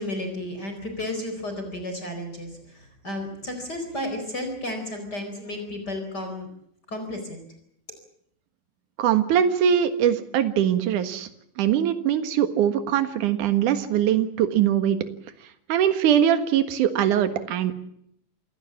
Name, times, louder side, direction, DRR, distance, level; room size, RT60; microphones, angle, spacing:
voice 1, 0.0-6.5 6.9-7.4, left 1 dB, 30° left, 5 dB, 4.8 m, -33 dB
voice 2, 9.0-11.3 11.6-15.0 15.7-17.7, right 9 dB, 75° right, 10 dB, 3.0 m, -22 dB
28.0 x 17.0 x 7.4 m, 0.72 s
omnidirectional pair, 3.7 m